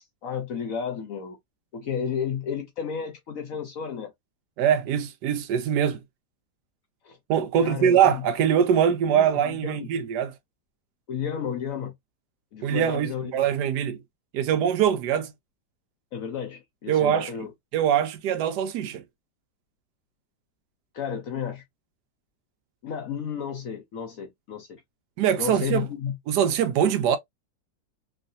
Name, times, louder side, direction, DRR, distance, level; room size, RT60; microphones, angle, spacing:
voice 1, 0.2-1.4 1.7-4.1 7.0-7.2 7.6-8.2 9.1-9.9 11.1-11.9 12.5-13.3 16.1-17.5 20.9-21.6 22.8-24.8 25.4-26.2, left 7 dB, 65° left, 0.9 m, -32 dB
voice 2, 4.6-6.0 7.3-10.3 12.6-14.0 14.3-15.3 16.9-17.3 17.7-19.0 25.2-25.9 26.3-27.2, right 9 dB, 75° right, 1.1 m, -23 dB
3.1 x 2.4 x 2.5 m
omnidirectional pair, 1.9 m